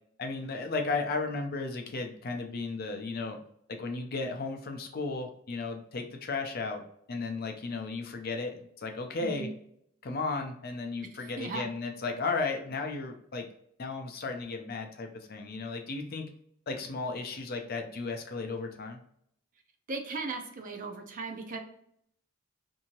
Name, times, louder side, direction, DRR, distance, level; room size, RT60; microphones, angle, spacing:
voice 1, 0.2-3.4 3.7-6.8 7.1-9.5 10.0-13.5 13.8-16.3 16.7-19.0, left 3 dB, 50° left, 4 dB, 0.5 m, -34 dB
voice 2, 9.2-9.5 11.2-11.7 19.9-21.6, right 3 dB, 40° right, 4 dB, 0.5 m, -37 dB
2.7 x 2.7 x 2.9 m, 0.69 s
head